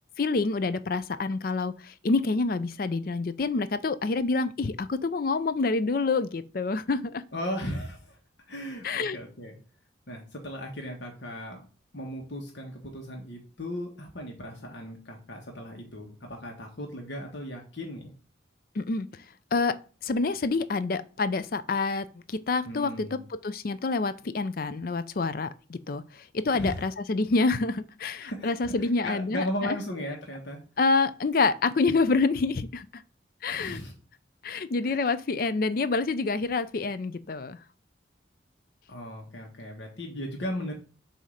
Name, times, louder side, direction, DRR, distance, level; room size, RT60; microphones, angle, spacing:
voice 1, 0.2-7.2 8.8-9.2 18.8-19.1 19.5-19.8 20.0-29.8 30.8-33.0 33.4-33.8 34.4-37.6, left 3 dB, 50° left, 0.4 m, -27 dB
voice 2, 7.3-8.2 8.5-9.6 10.1-11.6 11.9-18.1 22.6-23.2 26.5-26.8 28.2-30.6 33.5-33.9 34.8-35.1 38.9-40.7, equal, 75° left, 1.3 m, -36 dB
7.1 x 2.8 x 5.0 m
head